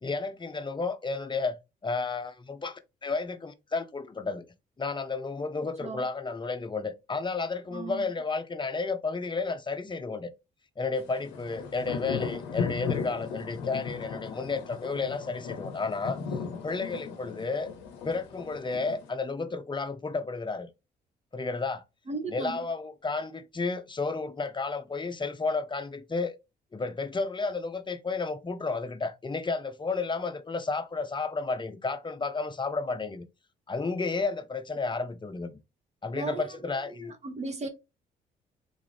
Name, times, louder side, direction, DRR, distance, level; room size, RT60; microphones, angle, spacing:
voice 1, 0.0-1.6 1.8-4.4 4.8-10.3 10.8-16.2 16.6-17.7 18.0-20.7 21.3-21.8 22.3-26.4 26.7-33.3 33.7-35.6 36.0-37.1, left 4 dB, 20° left, 0.6 m, -32 dB
voice 2, 7.7-8.0 22.1-22.6 36.1-37.7, right 3 dB, 30° right, 1.0 m, -37 dB
sound 1, 11.0-19.1, left 6 dB, 85° left, 0.6 m, -36 dB
3.9 x 2.5 x 3.3 m
hypercardioid pair, 50°, 21 cm